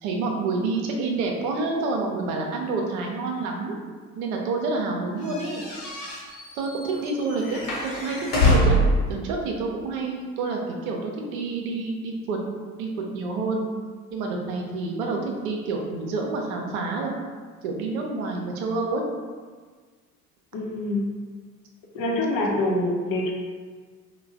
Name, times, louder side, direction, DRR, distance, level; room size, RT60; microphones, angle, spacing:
voice 1, 0.0-3.7 4.1-5.6 6.5-8.8 9.1-12.4 12.8-13.7 14.1-17.1 17.6-19.0, right 3 dB, 70° right, 1 dB, 0.7 m, -28 dB
sound 1, 5.3-9.0, left 1 dB, 70° left, 1.0 m, -24 dB
voice 2, 20.5-21.0 21.9-23.3, left 1 dB, 50° left, -1 dB, 0.8 m, -25 dB
3.2 x 2.2 x 3.4 m, 1.5 s
figure-of-eight pair, 60°, 44 cm